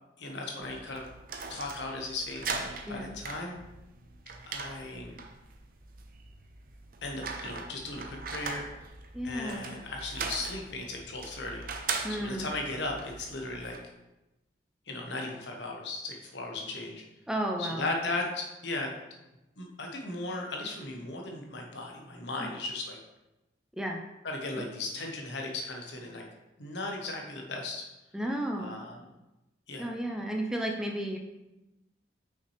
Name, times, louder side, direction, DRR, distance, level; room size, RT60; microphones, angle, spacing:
voice 1, 0.2-1.0 1.5-3.6 4.5-5.2 7.0-8.6 9.2-11.6 12.1-13.8 14.9-17.0 17.6-18.9 19.6-23.0 24.2-26.2 26.6-27.8 28.6-28.9 29.7-29.9, left 2 dB, 70° left, 1 dB, 1.1 m, -36 dB
sound 1, 0.6-13.8, right 4 dB, 50° right, 0.6 m, -40 dB
voice 2, 9.1-9.6 12.0-12.5 17.3-17.9 23.8-24.0 24.6-24.7 28.1-28.8 29.8-31.2, right 1 dB, 5° right, 2 dB, 0.4 m, -33 dB
6.1 x 5.7 x 3.2 m, 0.98 s
head